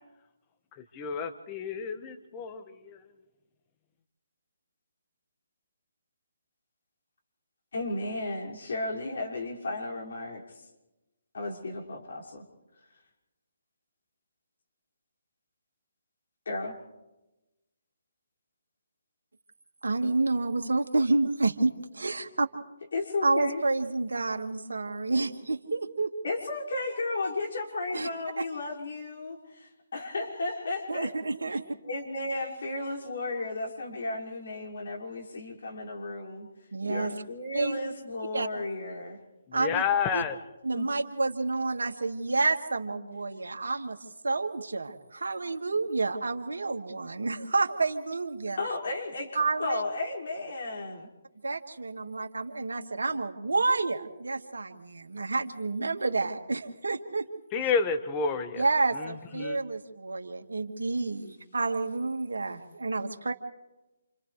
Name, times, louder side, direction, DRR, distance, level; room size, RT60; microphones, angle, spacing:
voice 1, 0.9-3.1 39.5-40.4 57.5-58.6 58.9-59.6, left 6 dB, 25° left, 7 dB, 1.6 m, -30 dB
voice 2, 7.7-10.6 11.3-12.4 16.5-16.8 22.9-23.6 26.2-31.1 31.5-31.6 31.8-36.5 36.8-39.2 40.7-40.9 48.5-51.1, left 2 dB, 65° left, -2 dB, 5.8 m, -34 dB
voice 3, 19.8-22.5 23.2-26.1 27.9-28.1 28.4-28.5 30.9-31.6 36.7-37.1 37.5-37.8 38.3-38.5 39.5-39.8 40.1-40.2 40.6-44.0 44.2-48.6 49.4-49.8 51.4-57.3 58.6-63.3, right 3 dB, 80° right, 5 dB, 2.0 m, -29 dB
28.5 x 28.5 x 3.4 m, 1.0 s
figure-of-eight pair, 150°, 0 cm